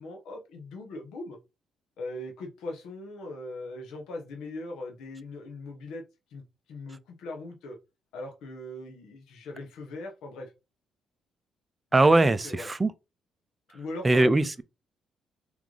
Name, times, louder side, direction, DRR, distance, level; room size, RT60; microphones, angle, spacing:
voice 1, 0.0-1.4 2.0-6.0 6.3-6.4 6.7-7.8 8.1-10.5 11.9-12.7 13.7-14.5, left 2 dB, 85° left, 1.3 m, -40 dB
voice 2, 11.9-12.4 12.7-12.9 14.0-14.6, right 2 dB, 20° right, 0.5 m, -20 dB
3.8 x 3.5 x 3.2 m
cardioid pair, 90°, 0 cm